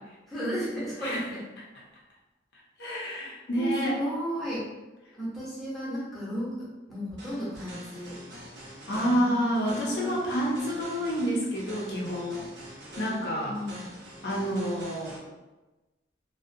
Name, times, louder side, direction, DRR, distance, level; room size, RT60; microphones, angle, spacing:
voice 1, 0.3-1.4 3.2-3.3 3.5-4.7 5.1-8.2 8.9-10.2 13.4-13.9, equal, ahead, -10 dB, 0.7 m, -34 dB
voice 2, 2.8-4.0 8.9-12.5 13.0-13.6 14.2-15.2, equal, 60° left, -3 dB, 0.5 m, -29 dB
sound 1, 7.2-15.2, right 1 dB, 65° right, 0.7 m, -45 dB
2.4 x 2.1 x 2.5 m, 1.1 s
head